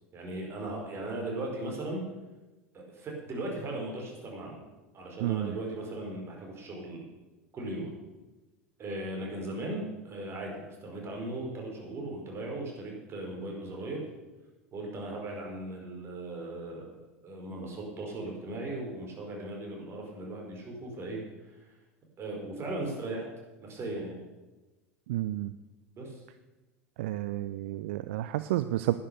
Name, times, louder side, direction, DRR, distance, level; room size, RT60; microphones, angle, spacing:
voice 1, 0.1-2.0 2.7-4.6 4.9-7.1 7.5-7.9 8.8-14.0 14.7-21.2 21.5-21.6 22.2-23.3 23.6-24.2 26.0-26.2, right 2 dB, 35° right, 0 dB, 4.7 m, -38 dB
voice 2, 5.2-5.6 25.1-25.5 27.0-28.9, right 15 dB, 65° right, 13 dB, 0.4 m, -30 dB
11.5 x 9.9 x 6.7 m, 1.1 s
figure-of-eight pair, 75°, 7 cm